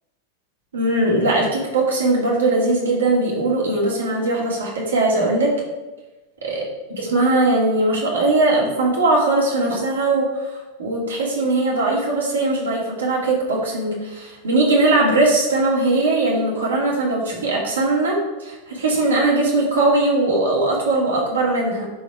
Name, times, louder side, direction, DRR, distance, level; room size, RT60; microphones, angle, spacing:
voice 1, 0.7-5.5 6.4-6.6 7.0-21.9, right 2 dB, 65° right, -3 dB, 2.6 m, -20 dB
11.5 x 4.2 x 4.8 m, 1.1 s
figure-of-eight pair, 90°, 0 cm